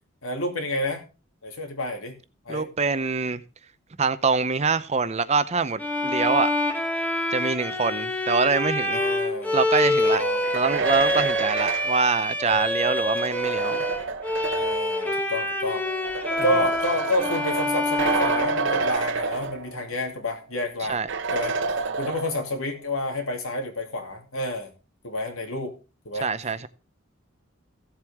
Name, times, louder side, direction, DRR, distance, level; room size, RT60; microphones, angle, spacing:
voice 1, 0.2-1.0 1.4-2.2 2.5-2.7 8.9-9.6 10.0-10.5 14.5-15.8 16.4-21.0 21.3-21.6 22.0-24.7 25.0-25.7 26.0-26.3, left 1 dB, 80° left, 2.6 m, -29 dB
voice 2, 2.5-3.4 4.0-6.5 7.3-9.0 9.5-10.2 10.5-13.8 16.4-16.5 20.9-21.1 26.2-26.7, right 4 dB, 30° right, 0.6 m, -24 dB
Bowed string instrument, 5.8-19.3, left 1 dB, 10° left, 1.2 m, -26 dB
sound 1, 10.2-14.9 15.9-20.0 20.3-20.4 21.1-22.6, right 4 dB, 60° right, 0.9 m, -29 dB
15.5 x 7.7 x 3.5 m
head